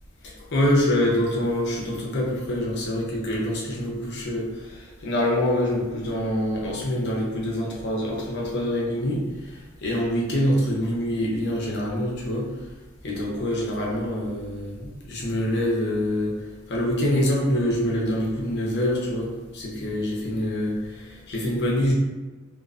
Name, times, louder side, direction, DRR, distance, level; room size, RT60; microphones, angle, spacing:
voice 1, 0.2-12.5 13.0-16.4 16.7-21.9, left 1 dB, 60° left, -3 dB, 0.6 m, -25 dB
2.3 x 2.2 x 2.4 m, 1.2 s
head